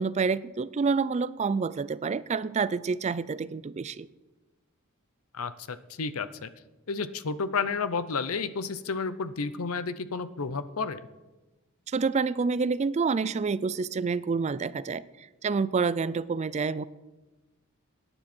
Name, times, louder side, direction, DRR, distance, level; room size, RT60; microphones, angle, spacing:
voice 1, 0.0-4.1 11.9-15.0 15.4-16.8, right 4 dB, 30° right, 18 dB, 0.3 m, -28 dB
voice 2, 5.3-6.5 6.9-11.1, left 4 dB, 80° left, 14 dB, 0.7 m, -31 dB
18.0 x 10.0 x 4.3 m, 1.1 s
head